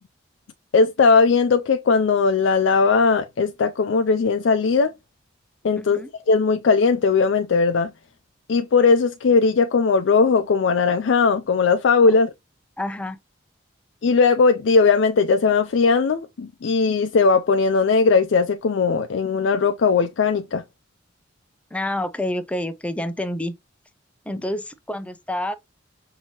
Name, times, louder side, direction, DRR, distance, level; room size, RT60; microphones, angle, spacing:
voice 1, 0.7-4.9 5.6-6.0 6.3-7.9 8.5-12.3 14.0-20.6, left 4 dB, 65° left, 0.4 m, -18 dB
voice 2, 5.8-6.1 12.8-13.2 21.7-23.5 24.3-25.5, left 1 dB, 5° left, 0.4 m, -28 dB
5.9 x 2.8 x 2.8 m
head